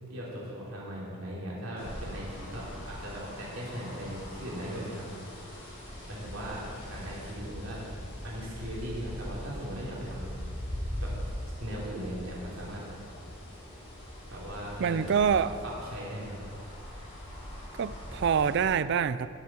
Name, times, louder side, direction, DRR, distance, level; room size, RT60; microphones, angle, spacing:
voice 1, 0.1-5.0 6.1-7.8 8.2-10.3 11.0-11.1 11.6-12.8 14.3-15.4 15.6-16.7, equal, 75° right, 3.3 m, -38 dB
sound 1, 1.8-18.6, equal, 25° left, 3.0 m, -41 dB
voice 2, 14.8-15.6 17.8-19.3, right 7 dB, 55° right, 0.3 m, -26 dB
18.0 x 7.3 x 4.4 m
head